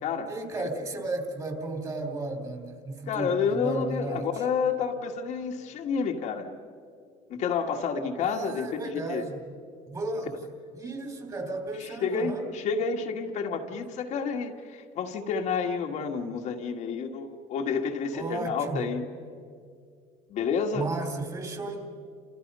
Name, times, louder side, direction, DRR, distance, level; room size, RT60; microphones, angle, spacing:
voice 1, 0.3-4.3 8.2-9.5 9.9-10.4 10.7-12.5 18.1-18.9 20.7-21.8, right 2 dB, 25° right, 4 dB, 3.6 m, -34 dB
voice 2, 3.1-6.5 7.3-9.2 11.8-19.0 20.3-20.9, left 5 dB, 55° left, 2 dB, 1.9 m, -30 dB
30.0 x 27.5 x 5.6 m, 2.3 s
cardioid pair, 125°, 14 cm